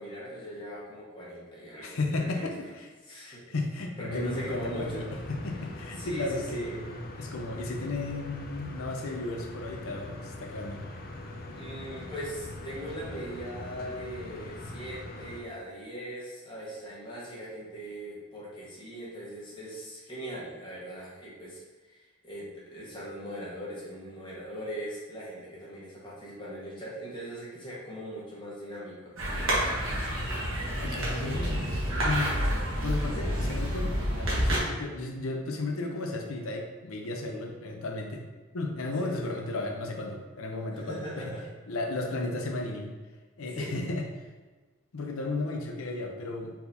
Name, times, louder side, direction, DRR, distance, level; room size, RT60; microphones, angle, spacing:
voice 1, 0.0-2.5 3.1-3.4 4.0-5.1 6.0-6.8 11.5-29.1 31.2-31.9 39.0-39.4 40.7-41.4 43.5-43.8, right 1 dB, 20° left, -7 dB, 1.2 m, -40 dB
voice 2, 1.8-2.9 3.2-10.8 30.8-31.7 32.0-32.5 32.8-38.2 38.5-41.3 41.7-42.9 43.4-44.1 44.9-46.5, left 2 dB, 85° left, 2 dB, 0.7 m, -34 dB
sound 1, 4.1-15.4, left 1 dB, 45° left, 0.4 m, -42 dB
sound 2, 29.2-34.6, equal, 70° right, 1.4 m, -29 dB
4.3 x 4.0 x 2.7 m, 1.3 s
head